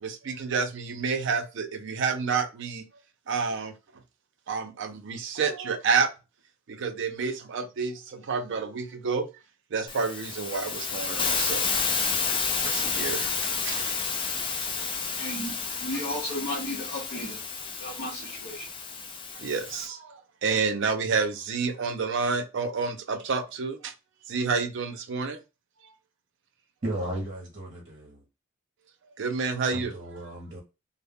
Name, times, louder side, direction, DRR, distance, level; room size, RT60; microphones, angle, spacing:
voice 1, 0.0-2.8 3.3-3.7 4.5-6.1 6.7-9.3 9.7-11.7 12.6-14.0 14.8-14.9 19.3-23.9 24.3-25.4 29.2-29.9, right 5 dB, 60° right, 0.5 m, -29 dB
Hiss, 9.9-19.9, left 5 dB, 25° left, 0.4 m, -30 dB
voice 2, 15.2-17.4 17.8-18.7, left 1 dB, 50° left, 0.7 m, -34 dB
voice 3, 26.8-28.2 29.7-30.6, right 1 dB, 40° right, 0.8 m, -35 dB
2.2 x 2.0 x 3.4 m
head